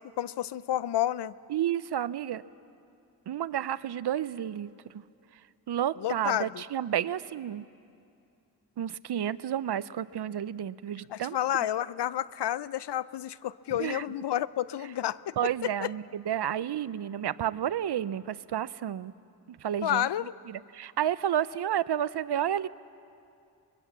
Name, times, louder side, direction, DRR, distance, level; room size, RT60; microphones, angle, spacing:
voice 1, 0.2-1.3 6.0-6.6 11.1-15.3 15.6-15.9 19.8-20.3, left 12 dB, 80° left, 18 dB, 0.6 m, -30 dB
voice 2, 1.5-2.4 3.3-4.7 5.7-7.7 8.8-11.4 13.8-14.0 15.4-19.1 19.5-20.1 20.5-22.7, right 10 dB, 75° right, 17 dB, 0.6 m, -31 dB
24.5 x 21.0 x 7.4 m, 2.5 s
cardioid pair, 40°, 41 cm